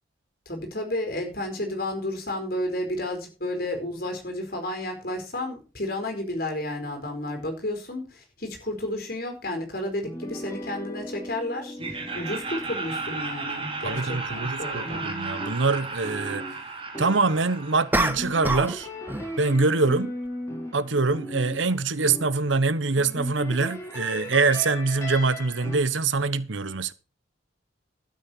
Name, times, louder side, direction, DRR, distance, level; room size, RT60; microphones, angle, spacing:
voice 1, 0.5-11.8 12.1-15.0, left 1 dB, 50° left, 4.6 m, -32 dB
sound 1, 10.0-14.4 14.8-22.6 23.0-25.8, left 1 dB, 15° left, 4.4 m, -38 dB
Laughter, 11.8-18.7, right 4 dB, 30° right, 3.2 m, -34 dB
voice 2, 13.8-16.5 17.0-18.9 19.4-20.1 20.7-26.9, right 3 dB, 80° right, 1.1 m, -24 dB
sound 2, 13.9-14.0 17.9-18.8 19.1-19.4, right 1 dB, 10° right, 1.2 m, -26 dB
12.5 x 9.1 x 4.5 m
head